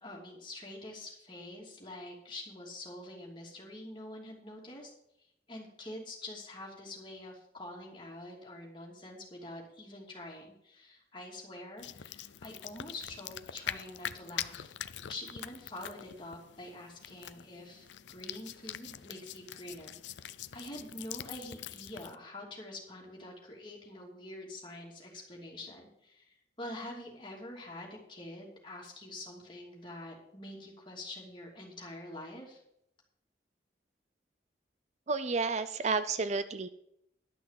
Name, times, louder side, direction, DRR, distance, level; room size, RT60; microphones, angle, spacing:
voice 1, 0.0-4.9 5.5-14.7 15.1-32.6, left 1 dB, 25° left, -2 dB, 2.8 m, -46 dB
sound 1, 11.8-22.1, left 10 dB, 90° left, 0.5 m, -44 dB
voice 2, 35.1-36.7, right 4 dB, 40° right, 13 dB, 0.4 m, -31 dB
11.5 x 6.2 x 7.6 m, 0.77 s
head